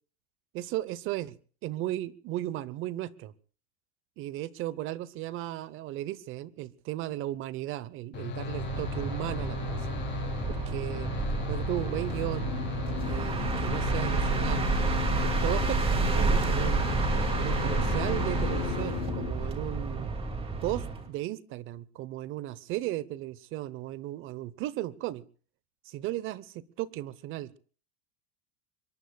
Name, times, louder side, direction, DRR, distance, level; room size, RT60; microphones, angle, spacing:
voice 1, 0.5-1.4 1.6-3.3 4.2-10.0 10.5-11.1 11.5-12.5 13.0-14.7 15.2-16.9 17.4-20.1 20.6-25.2 25.9-27.6, right 14 dB, 35° right, 19 dB, 0.9 m, -35 dB
sound 1, 8.1-19.5, left 5 dB, 30° left, 3.1 m, -37 dB
sound 2, 8.4-21.1, right 4 dB, 15° right, 2.4 m, -30 dB
sound 3, 12.1-19.3, left 15 dB, 80° left, 1.1 m, -38 dB
26.0 x 23.0 x 2.4 m, 0.43 s
supercardioid pair, 155°, 34 cm